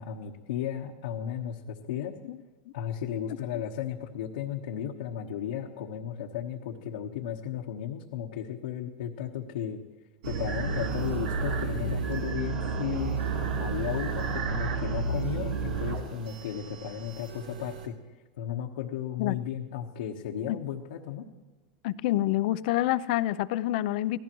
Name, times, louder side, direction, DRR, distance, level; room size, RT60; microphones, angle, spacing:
voice 1, 0.0-2.1 2.7-9.8 10.3-13.2 13.6-17.9 18.4-21.2, left 9 dB, 85° left, -1 dB, 1.3 m, -35 dB
sound 1, 10.2-17.9, right 4 dB, 80° right, 3.2 m, -31 dB
voice 2, 21.8-24.2, left 15 dB, 65° left, 16 dB, 0.6 m, -27 dB
26.5 x 17.5 x 3.1 m, 1.2 s
supercardioid pair, 135°, 5 cm